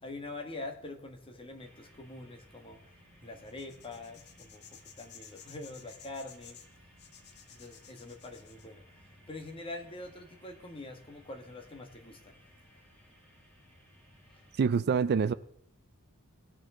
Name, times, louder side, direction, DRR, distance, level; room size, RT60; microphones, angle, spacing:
voice 1, 0.0-6.6 7.5-12.4 14.3-14.4, left 2 dB, 25° left, 1.5 m, -45 dB
sound 1, 1.6-14.6, equal, 10° left, 5.8 m, -61 dB
sound 2, 3.4-8.7, left 8 dB, 50° left, 1.1 m, -54 dB
voice 2, 14.6-15.3, right 6 dB, 45° right, 0.4 m, -26 dB
18.5 x 6.6 x 3.8 m
head